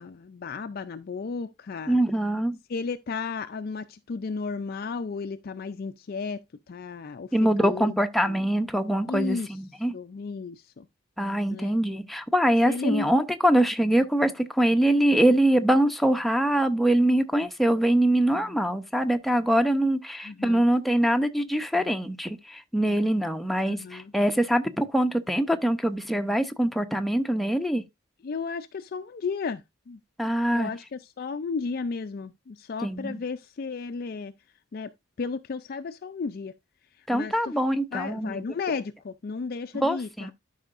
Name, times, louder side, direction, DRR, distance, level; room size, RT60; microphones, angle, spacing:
voice 1, 0.0-2.0 2.7-6.4 6.7-7.9 8.2-8.5 9.1-9.5 9.9-10.9 11.5-11.7 12.7-13.1 20.2-20.6 23.7-24.1 28.2-30.0 30.5-34.3 34.7-34.9 35.2-36.5 37.1-37.5 37.9-40.3, left 4 dB, 45° left, 0.4 m, -33 dB
voice 2, 1.9-2.6 7.3-9.9 11.2-27.8 30.2-30.7 32.8-33.2 37.1-38.4 39.8-40.3, right 1 dB, ahead, 0.6 m, -23 dB
12.5 x 5.5 x 2.5 m
head